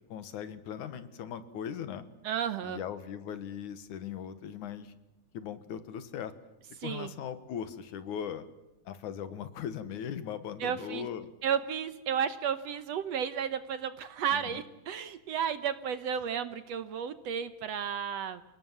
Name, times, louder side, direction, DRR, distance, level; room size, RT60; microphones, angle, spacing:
voice 1, 0.1-2.0 2.6-4.9 5.3-6.3 6.8-8.4 8.9-11.3 14.3-14.6, left 8 dB, 75° left, 12 dB, 2.9 m, -39 dB
voice 2, 2.2-2.8 6.8-7.1 10.6-11.1 11.4-18.4, right 8 dB, 65° right, 12 dB, 1.8 m, -33 dB
29.0 x 19.0 x 7.4 m, 0.96 s
omnidirectional pair, 3.6 m